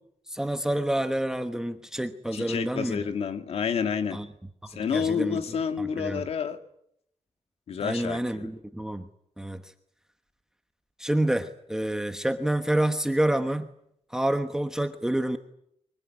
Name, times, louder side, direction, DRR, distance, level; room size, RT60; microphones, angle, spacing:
voice 1, 0.3-3.0 4.1-4.2 4.9-5.4 5.8-6.2 7.8-9.1 9.4-9.6 11.0-13.7 14.1-15.4, right 1 dB, 5° right, 7 dB, 1.1 m, -28 dB
voice 2, 2.3-4.2 4.7-6.6 7.7-8.5, left 6 dB, 70° left, 7 dB, 2.4 m, -29 dB
24.5 x 21.5 x 9.6 m, 0.74 s
wide cardioid pair, 165°, 11 cm